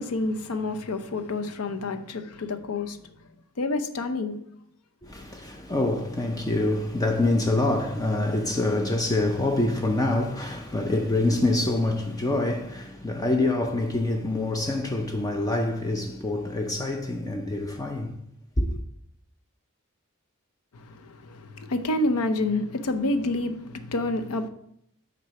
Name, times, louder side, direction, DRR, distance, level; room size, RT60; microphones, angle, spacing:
voice 1, 0.0-3.0 3.6-4.4 20.7-24.5, left 2 dB, 80° left, 0.6 m, -28 dB
voice 2, 5.0-18.2 18.6-18.8, left 2 dB, 15° left, 0.4 m, -26 dB
6.4 x 3.9 x 5.7 m
head